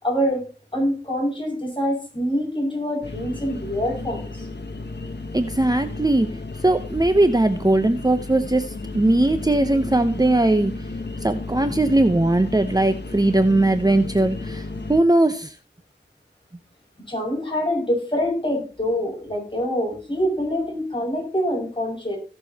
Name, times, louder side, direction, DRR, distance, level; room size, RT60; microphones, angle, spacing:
voice 1, 0.0-0.5 0.7-4.5 17.1-22.2, equal, 25° left, -2 dB, 6.3 m, -25 dB
sound 1, 3.0-15.0, left 2 dB, 65° left, 1.3 m, -33 dB
voice 2, 5.3-6.4 6.6-10.7 11.2-15.6, right 2 dB, 20° right, 8 dB, 0.8 m, -19 dB
17.5 x 6.9 x 2.9 m, 0.36 s
wide cardioid pair, 50°, 19 cm